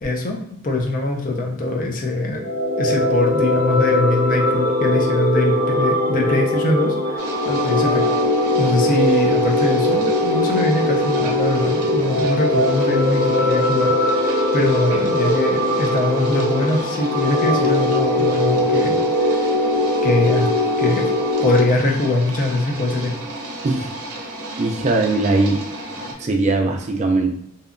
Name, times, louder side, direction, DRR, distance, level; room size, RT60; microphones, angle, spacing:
voice 1, 0.0-2.4 2.8-8.1 8.6-19.0 19.3-19.4 20.0-20.5 20.8-21.1 21.4-23.2, left 2 dB, 40° left, 1 dB, 0.4 m, -22 dB
sound 1, 2.3-21.6, left 1 dB, 65° left, 0.8 m, -20 dB
sound 2, 7.2-26.1, right 1 dB, 80° right, 0.5 m, -33 dB
voice 2, 23.6-24.0 24.6-25.6 26.2-27.3, right 2 dB, 30° right, 2 dB, 0.3 m, -20 dB
2.8 x 2.2 x 2.4 m, 0.72 s
head